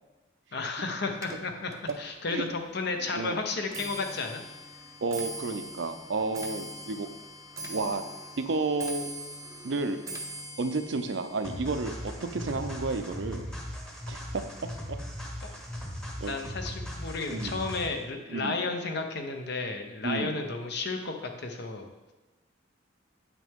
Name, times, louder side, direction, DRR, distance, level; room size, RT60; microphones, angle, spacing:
voice 1, 0.5-4.4 15.4-15.5 16.2-21.9, left 3 dB, 60° left, 5 dB, 0.9 m, -33 dB
Clock, 1.1-14.5 14.8-15.3 16.1-16.2 16.5-16.9 17.1-17.2, right 1 dB, 15° right, 0.6 m, -43 dB
voice 2, 5.0-7.1 7.6-8.0 8.4-9.1 9.6-10.0 10.6-13.5 14.1-14.4 14.9-15.0 16.2-16.4 17.3-17.6 18.3-18.7 20.0-20.4, right 3 dB, 65° right, 9 dB, 0.5 m, -31 dB
sound 1, 11.4-18.0, equal, 5° left, 1.0 m, -38 dB
8.0 x 6.0 x 3.6 m, 1.2 s
head